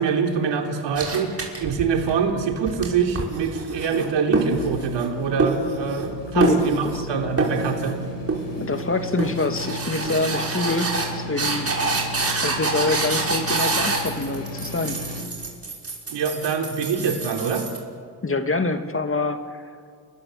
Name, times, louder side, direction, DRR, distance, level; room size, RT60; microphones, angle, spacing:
voice 1, 0.0-1.3 1.6-8.0 16.1-17.7, right 6 dB, 85° right, 3 dB, 3.4 m, -24 dB
sound 1, 0.9-2.1 2.5-5.1 5.4-6.1 6.4-7.1 7.4-8.0 8.3-8.8 9.2-17.8, right 3 dB, 35° right, 6.1 m, -26 dB
sound 2, 4.5-15.2, left 2 dB, 80° left, 5.6 m, -35 dB
voice 2, 8.6-11.7 12.4-15.0 18.2-19.4, left 3 dB, 30° left, 7 dB, 2.5 m, -25 dB
30.0 x 21.0 x 7.9 m, 2.3 s
cardioid pair, 80°, 42 cm